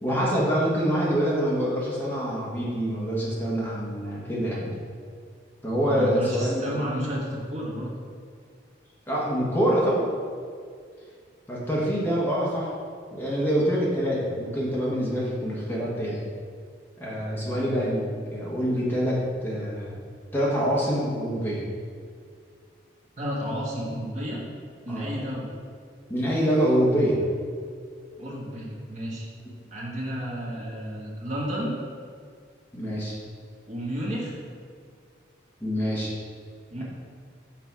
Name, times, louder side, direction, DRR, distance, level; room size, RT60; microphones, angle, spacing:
voice 1, 0.0-4.7 5.6-6.6 9.1-10.1 11.5-12.7 13.1-16.2 17.0-20.0 20.3-21.7 24.9-25.1 26.1-27.2 32.7-33.1 35.6-36.1, equal, 10° left, -6 dB, 1.1 m, -25 dB
voice 2, 5.9-7.9 17.4-17.7 23.2-24.4 24.8-25.5 28.2-29.3 29.7-31.7 33.7-34.4 36.7-36.8, equal, 40° right, -4 dB, 1.4 m, -32 dB
6.1 x 5.0 x 4.7 m, 2.1 s
head